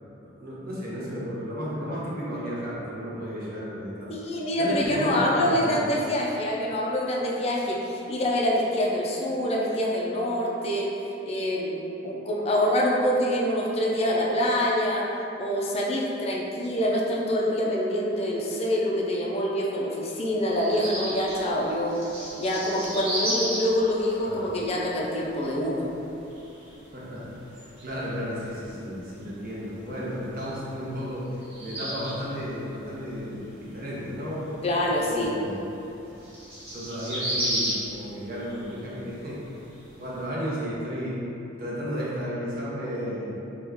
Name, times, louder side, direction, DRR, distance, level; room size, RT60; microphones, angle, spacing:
voice 1, 0.0-4.1 4.6-5.8 24.2-24.4 26.9-27.4 27.8-31.3 31.6-34.5 35.0-35.6 36.7-39.4 40.0-41.2 41.6-43.3, equal, 50° right, -7 dB, 0.7 m, -33 dB
voice 2, 4.1-10.9 11.2-15.0 15.4-22.0 22.4-26.0 34.6-35.3, equal, 30° left, -3 dB, 0.4 m, -26 dB
sound 1, 20.5-40.3, equal, 30° right, 1.1 m, -36 dB
2.9 x 2.3 x 3.5 m, 3.0 s
head